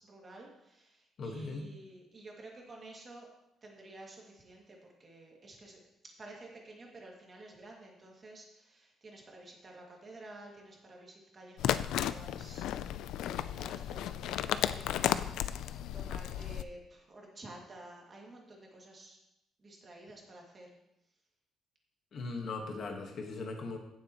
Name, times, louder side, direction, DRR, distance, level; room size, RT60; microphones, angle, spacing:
voice 1, 0.0-3.3 3.6-12.8 13.5-19.2 19.6-20.7, right 2 dB, 25° right, -1 dB, 2.2 m, -52 dB
voice 2, 1.2-1.7 22.1-23.8, left 3 dB, 45° left, 2 dB, 1.4 m, -39 dB
sound 1, 11.6-16.6, left 11 dB, 80° left, 0.4 m, -34 dB
16.0 x 7.4 x 3.0 m, 0.84 s
cardioid pair, 170°, 0 cm